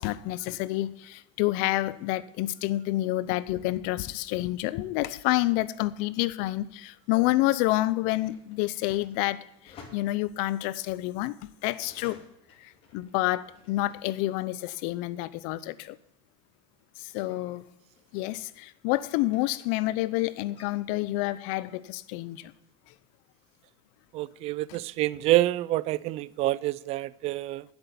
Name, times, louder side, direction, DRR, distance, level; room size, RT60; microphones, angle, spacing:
voice 1, 0.0-11.3 11.6-12.2 12.6-16.0 17.0-17.6 18.1-22.5 24.7-24.8, left 17 dB, 60° left, 0.7 m, -28 dB
sound 1, 7.6-14.4 14.7-18.5 18.8-20.8, left 4 dB, 40° left, 2.8 m, -56 dB
voice 2, 24.1-27.6, right 16 dB, 45° right, 0.4 m, -27 dB
9.9 x 8.0 x 7.0 m
supercardioid pair, 135°, 15 cm